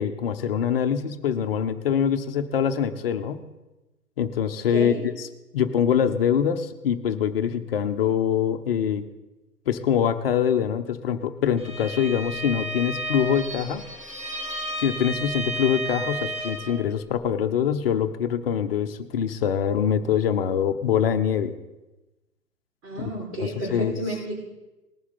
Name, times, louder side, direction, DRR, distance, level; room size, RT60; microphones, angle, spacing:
voice 1, 0.0-3.5 4.2-4.9 5.5-9.0 9.7-13.8 14.8-21.6 23.0-23.1 23.4-23.9, left 8 dB, 35° left, 8 dB, 0.9 m, -24 dB
voice 2, 4.7-5.1 22.8-24.4, right 2 dB, 50° right, -4 dB, 4.9 m, -31 dB
Bowed string instrument, 11.6-16.8, right 1 dB, 10° right, 2.2 m, -32 dB
19.5 x 7.2 x 4.2 m, 1.1 s
figure-of-eight pair, 125°, 48 cm